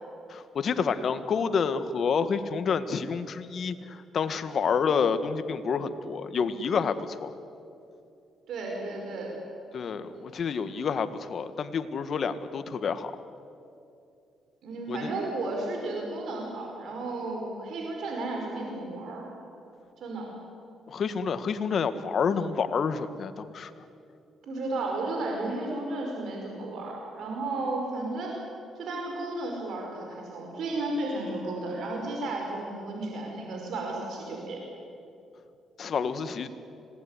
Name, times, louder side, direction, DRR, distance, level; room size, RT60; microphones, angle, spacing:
voice 1, 0.3-7.3 9.7-13.1 14.9-15.1 20.9-23.7 35.8-36.5, left 6 dB, 55° left, 11 dB, 1.7 m, -29 dB
voice 2, 8.5-9.3 10.1-10.3 14.6-19.2 20.0-20.3 24.4-28.3 28.7-34.6, right 2 dB, 70° right, 0 dB, 5.3 m, -33 dB
26.5 x 19.0 x 9.9 m, 2.6 s
cardioid pair, 90°, 0 cm